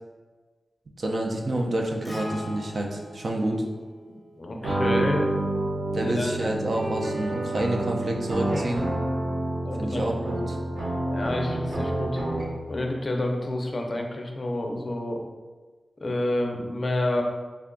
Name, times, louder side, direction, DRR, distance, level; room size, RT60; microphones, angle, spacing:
voice 1, 1.0-3.6 5.9-8.9 9.8-10.6, right 1 dB, 55° right, 1 dB, 0.5 m, -28 dB
Acoustic guitar, 2.0-6.3, equal, 5° left, 0.9 m, -42 dB
voice 2, 4.4-5.2 5.6-5.7 5.9-6.3 9.6-10.1 11.1-12.2 12.7-15.2 16.0-17.2, left 1 dB, 40° left, 2 dB, 0.5 m, -29 dB
sound 1, 4.6-12.7, right 1 dB, 80° right, 0.9 m, -28 dB
3.4 x 2.2 x 3.7 m, 1.3 s
wide cardioid pair, 105°, 0 cm